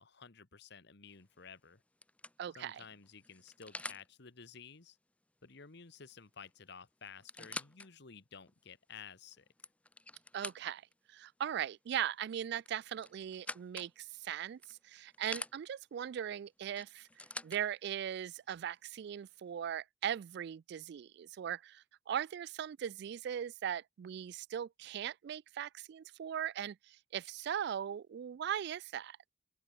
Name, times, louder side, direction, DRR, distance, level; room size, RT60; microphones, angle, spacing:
voice 1, 0.0-1.8 2.5-5.0 5.4-9.4, left 6 dB, 60° left, 1.4 m, -53 dB
sound 1, 1.1-1.4 2.0-4.1 6.1-6.2 6.5-6.6 7.1-7.9 8.5-8.6 9.3-10.9 12.6-13.9 14.6-15.5 16.8-17.6 18.5-18.6, left 2 dB, 5° left, 0.9 m, -46 dB
voice 2, 2.4-2.8 10.3-10.8 11.1-17.1 17.4-29.2, right 9 dB, 60° right, 0.3 m, -39 dB
open air
head